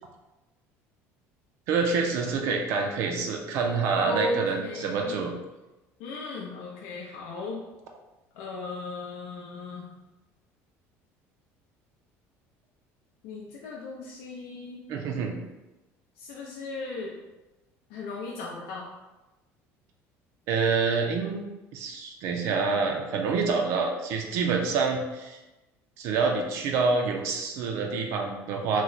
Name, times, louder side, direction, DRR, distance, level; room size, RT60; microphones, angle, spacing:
voice 1, 1.7-5.3 14.9-15.4 20.5-21.4 21.7-25.4 26.0-28.8, right 4 dB, 55° right, 2 dB, 0.4 m, -27 dB
voice 2, 4.0-5.2 6.0-7.6 8.3-10.0 13.2-14.8 16.2-17.2 17.9-18.9, left 2 dB, 85° left, -3 dB, 0.5 m, -36 dB
3.0 x 2.1 x 3.9 m, 1.1 s
cardioid pair, 170°, 6 cm